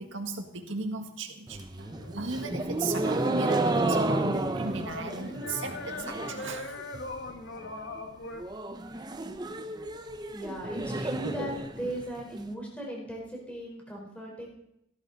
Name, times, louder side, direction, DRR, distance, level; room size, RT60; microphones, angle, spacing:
voice 1, 0.0-6.8, right 3 dB, 80° right, 4 dB, 1.8 m, -36 dB
sound 1, 1.5-6.5 6.8-7.3 7.6-7.7 8.0-8.1 8.4-12.4, right 2 dB, 20° right, 0.8 m, -31 dB
sound 2, 1.8-8.4, left 2 dB, 65° left, 1.4 m, -42 dB
voice 2, 10.3-14.5, right 1 dB, 5° left, -2 dB, 4.3 m, -37 dB
16.0 x 13.0 x 4.1 m, 0.80 s
head